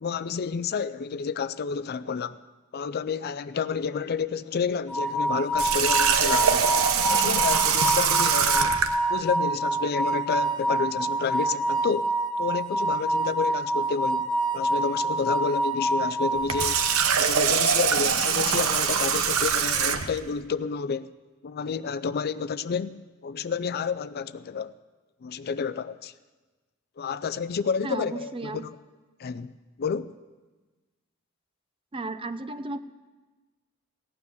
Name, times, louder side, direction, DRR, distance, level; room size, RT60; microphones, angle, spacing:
voice 1, 0.0-2.4 2.7-6.7 7.1-8.7 9.1-14.3 14.5-16.8 17.2-21.1 21.4-24.7 25.2-26.1 27.0-28.8 29.2-29.5 29.8-30.1, left 5 dB, 50° left, 0.4 m, -30 dB
sound 1, 4.9-17.1, right 1 dB, 5° left, 1.1 m, -27 dB
Water tap faucet, 5.6-9.0 16.4-20.2, right 7 dB, 85° right, 0.9 m, -23 dB
voice 2, 27.8-28.6 31.9-32.8, right 2 dB, 25° right, 0.6 m, -34 dB
16.5 x 9.6 x 6.9 m
head